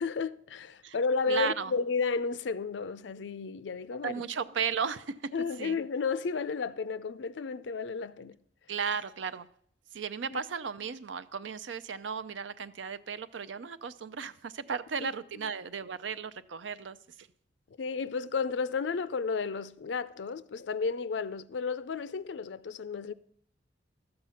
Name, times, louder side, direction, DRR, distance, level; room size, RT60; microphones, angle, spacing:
voice 1, 0.0-4.2 5.3-8.4 10.3-10.4 15.0-15.1 15.4-15.5 17.8-23.1, left 5 dB, 70° left, 0.5 m, -32 dB
voice 2, 1.3-1.7 4.0-5.3 5.6-5.8 8.7-9.5 9.9-17.3, right 6 dB, 80° right, 0.5 m, -35 dB
12.5 x 7.7 x 5.7 m
head